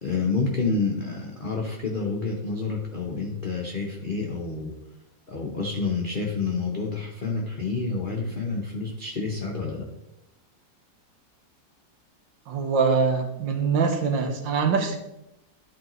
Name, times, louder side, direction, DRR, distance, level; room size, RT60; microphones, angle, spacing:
voice 1, 0.0-4.7 5.3-9.9, left 4 dB, 40° left, -1 dB, 0.7 m, -28 dB
voice 2, 12.5-15.0, right 5 dB, 80° right, 4 dB, 1.7 m, -23 dB
11.5 x 4.8 x 3.0 m, 0.87 s
omnidirectional pair, 2.0 m